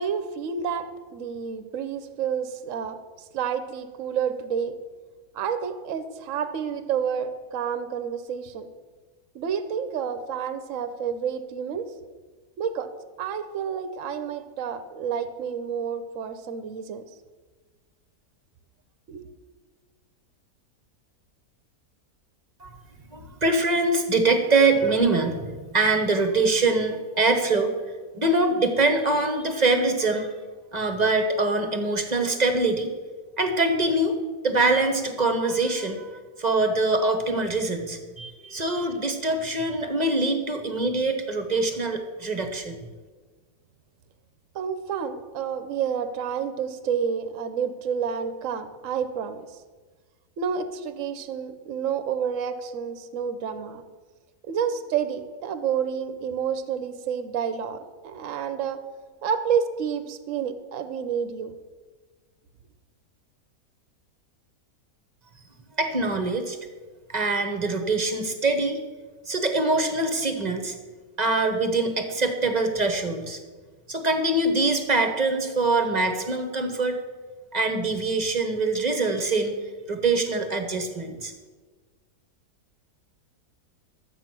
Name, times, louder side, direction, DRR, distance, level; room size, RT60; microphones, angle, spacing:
voice 1, 0.0-4.7 5.3-8.7 9.3-11.9 12.6-12.9 13.2-17.0 19.1-19.3 44.5-49.4 50.4-53.8 54.5-58.8 59.2-61.6, right 7 dB, 60° right, 11 dB, 1.1 m, -29 dB
voice 2, 23.1-27.7 28.1-30.3 30.7-32.9 33.4-34.2 34.4-42.8 65.8-66.6 67.1-68.8 69.3-70.7 71.2-73.4 73.9-77.0 77.5-79.6 79.9-81.3, right 3 dB, 30° right, 6 dB, 1.1 m, -24 dB
12.0 x 8.3 x 6.0 m, 1.4 s
omnidirectional pair, 1.7 m